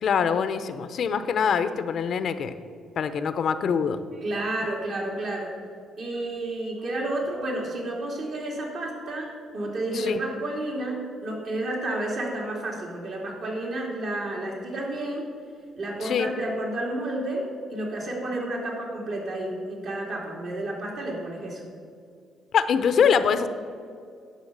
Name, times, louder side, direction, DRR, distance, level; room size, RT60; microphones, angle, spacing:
voice 1, 0.0-2.5 3.0-4.0 9.9-10.2 16.0-16.3 22.5-23.5, left 7 dB, 60° left, 11 dB, 0.6 m, -24 dB
voice 2, 4.1-5.5 6.0-15.3 15.8-21.6, right 1 dB, 65° right, -2 dB, 3.0 m, -31 dB
10.5 x 5.7 x 7.9 m, 2.3 s
cardioid pair, 90°, 0 cm